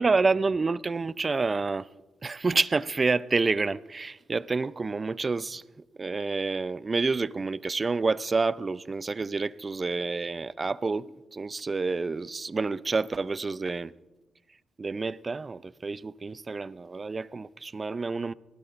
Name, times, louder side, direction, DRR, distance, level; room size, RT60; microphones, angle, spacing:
voice 1, 0.0-1.9 2.2-5.6 6.0-11.0 11.3-13.9 14.8-18.3, right 4 dB, 35° right, 0.5 m, -28 dB
24.0 x 18.5 x 2.6 m
supercardioid pair, 55°, 0 cm